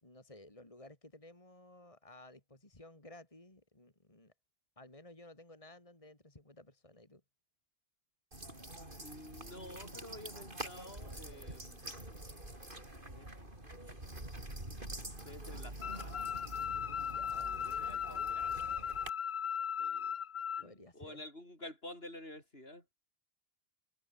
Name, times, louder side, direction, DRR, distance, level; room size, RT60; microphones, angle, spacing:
voice 1, 0.0-4.3 4.8-7.2 17.1-17.9 20.6-21.2, left 1 dB, 30° left, 3.2 m, -56 dB
sound 1, 8.3-19.1, right 1 dB, 55° right, 6.9 m, -46 dB
voice 2, 9.0-11.9 13.0-13.3 13.6-14.2 15.2-16.2 17.4-18.7 19.8-20.1 20.6-22.9, left 1 dB, 70° left, 8.4 m, -51 dB
sound 2, 15.8-20.6, left 8 dB, 50° left, 0.8 m, -37 dB
omnidirectional pair, 1.1 m